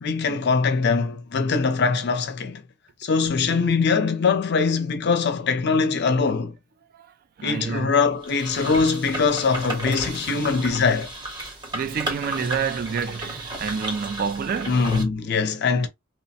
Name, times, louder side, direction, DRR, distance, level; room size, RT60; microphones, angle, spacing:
voice 1, 0.0-2.6 3.0-6.5 7.4-11.1 14.7-15.9, left 4 dB, 55° left, 0.5 m, -22 dB
voice 2, 7.4-7.9 11.7-14.9, right 6 dB, 45° right, 0.3 m, -28 dB
sound 1, 8.2-15.0, right 1 dB, 25° right, 0.9 m, -34 dB
2.9 x 2.1 x 2.7 m
head